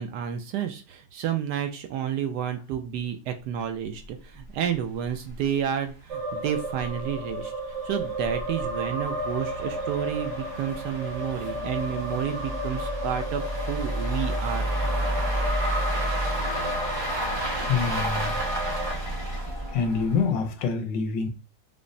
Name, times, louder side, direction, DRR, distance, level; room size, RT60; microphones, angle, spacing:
voice 1, 0.0-7.5 7.8-14.7, right 9 dB, 75° right, 1.1 m, -30 dB
sound 1, 4.0-4.1 4.4-4.5 4.9-5.0 5.3-5.4 6.0-20.4, right 1 dB, 20° right, 0.8 m, -31 dB
sound 2, 6.1-18.9, equal, 45° right, 1.4 m, -33 dB
voice 2, 17.6-18.4 19.7-21.3, left 5 dB, 80° left, 1.3 m, -26 dB
5.0 x 2.0 x 2.6 m
omnidirectional pair, 2.0 m